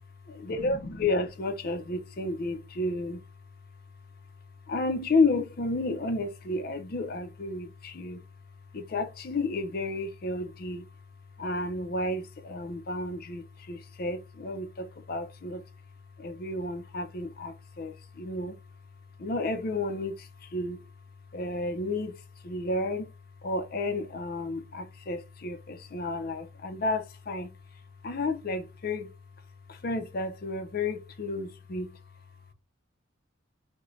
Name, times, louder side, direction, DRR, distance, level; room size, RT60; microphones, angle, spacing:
voice 1, 0.4-3.2 4.7-8.2 8.7-10.8 11.4-15.6 16.2-18.6 19.2-20.8 21.3-22.2 22.4-23.1 23.4-27.5 28.0-29.1 29.7-31.9, left 2 dB, 45° left, 0.5 m, -31 dB
3.7 x 2.2 x 3.1 m
head